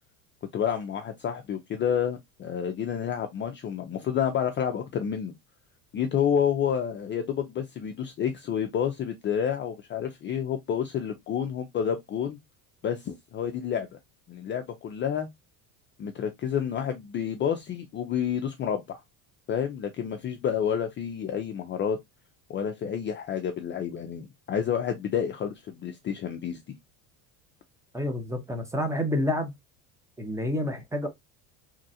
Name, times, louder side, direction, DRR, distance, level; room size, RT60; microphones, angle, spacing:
voice 1, 0.5-5.3 5.9-12.4 12.8-13.9 14.3-15.3 16.0-19.0 19.5-22.0 22.5-26.6, left 8 dB, 30° left, 0.4 m, -29 dB
voice 2, 27.9-29.5 30.2-31.1, left 1 dB, 5° right, 0.6 m, -28 dB
3.1 x 2.4 x 2.7 m
cardioid pair, 120°, 40 cm